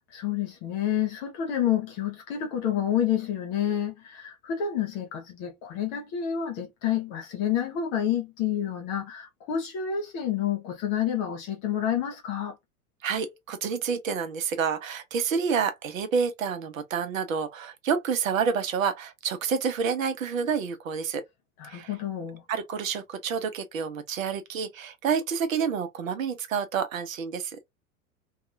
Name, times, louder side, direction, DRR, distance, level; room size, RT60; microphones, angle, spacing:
voice 1, 0.1-12.6 21.6-22.4, left 9 dB, 20° left, 0.4 m, -29 dB
voice 2, 13.0-21.2 21.7-21.9 22.5-27.5, right 6 dB, 60° right, 0.8 m, -28 dB
2.8 x 2.3 x 2.5 m
figure-of-eight pair, 90°, 44 cm